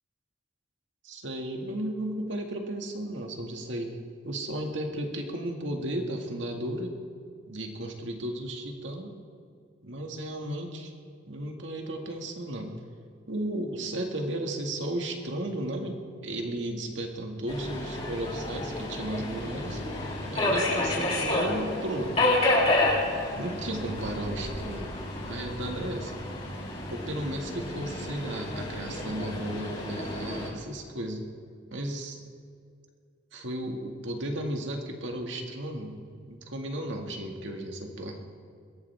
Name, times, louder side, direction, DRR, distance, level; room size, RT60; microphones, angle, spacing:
voice 1, 1.0-4.0 4.2-7.0 7.5-9.2 9.8-10.9 11.3-12.8 13.3-19.8 20.3-22.2 23.4-25.0 25.2-26.1 26.9-31.3 31.7-32.2 33.3-38.2, right 1 dB, 75° right, 2 dB, 2.1 m, -34 dB
Subway metro underground, 17.5-30.5, left 2 dB, 35° left, 4.3 m, -30 dB
22.0 x 16.5 x 3.6 m, 2.2 s
head